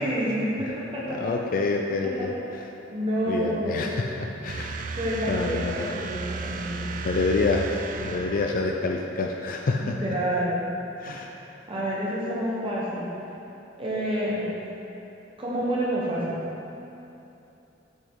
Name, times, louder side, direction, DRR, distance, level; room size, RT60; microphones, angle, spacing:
voice 1, 0.0-1.3 2.0-2.1 2.9-4.1 5.0-6.8 9.8-10.6 11.1-13.1 13.8-14.5 15.4-16.4, equal, 30° right, -7 dB, 0.9 m, -28 dB
voice 2, 1.1-2.3 3.3-4.9 5.3-6.1 7.0-10.0 11.0-11.3, left 3 dB, 50° left, 2 dB, 0.3 m, -27 dB
sound 1, 4.5-9.2, right 4 dB, 45° right, 0.3 m, -35 dB
6.3 x 5.6 x 3.6 m, 2.9 s
head